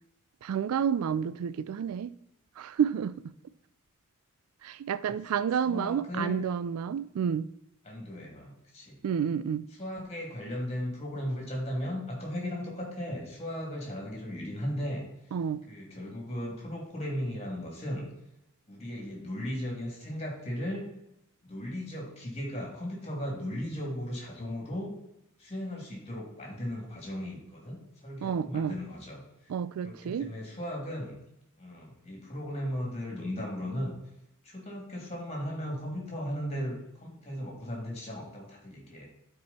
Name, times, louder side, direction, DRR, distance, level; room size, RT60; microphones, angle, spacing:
voice 1, 0.4-2.1 2.6-3.3 4.6-7.5 9.0-9.7 15.3-15.6 28.2-28.8 29.5-30.3, right 7 dB, 80° right, 0.3 m, -30 dB
voice 2, 5.6-6.4 7.8-9.0 9.8-15.0 15.7-18.1 18.7-20.9 21.4-24.9 25.4-29.2 29.8-31.1 31.6-33.9 34.4-39.1, equal, 30° left, 2.7 m, -36 dB
11.5 x 4.8 x 4.2 m
head